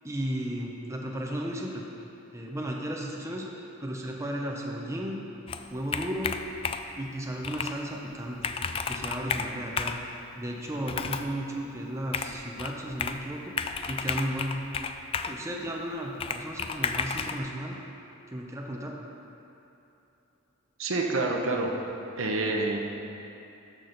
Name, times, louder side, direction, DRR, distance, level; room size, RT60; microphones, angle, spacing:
voice 1, 0.0-1.9 2.3-5.2 5.7-6.3 7.0-8.5 8.8-9.9 10.3-14.6 15.2-17.8 18.3-19.0, equal, 15° right, -1 dB, 0.7 m, -34 dB
Computer keyboard, 5.5-7.0 7.4-7.8 8.1-8.2 8.4-10.0 10.8-11.3 12.1-13.2 13.6-15.4 16.2-17.4, left 5 dB, 25° left, 0.3 m, -32 dB
voice 2, 20.8-21.7 22.2-22.8, right 2 dB, 75° right, 1 dB, 1.0 m, -27 dB
13.0 x 6.1 x 4.0 m, 3.0 s
head